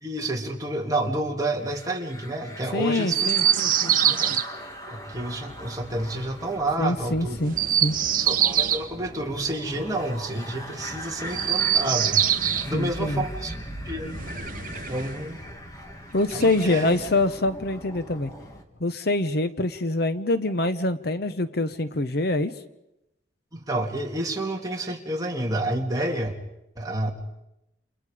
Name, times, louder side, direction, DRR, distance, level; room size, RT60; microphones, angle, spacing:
voice 1, 0.0-3.3 4.1-4.4 4.9-7.4 8.2-12.2 12.6-13.6 13.8-14.2 14.9-15.4 16.3-17.0 23.5-26.3 26.8-27.1, right 1 dB, 20° right, 1 dB, 2.4 m, -29 dB
In my head, 1.6-18.6, equal, 20° left, 2.3 m, -40 dB
voice 2, 2.7-4.4 6.8-8.0 12.7-13.2 16.1-18.3 18.8-22.5 26.0-26.1, left 2 dB, 55° left, 12 dB, 1.0 m, -25 dB
Chirp tweet, 3.1-4.4 7.4-8.9 11.2-12.7 14.1-15.2 16.3-17.2, right 10 dB, 45° right, 1.0 m, -24 dB
29.5 x 28.0 x 5.1 m, 0.86 s
head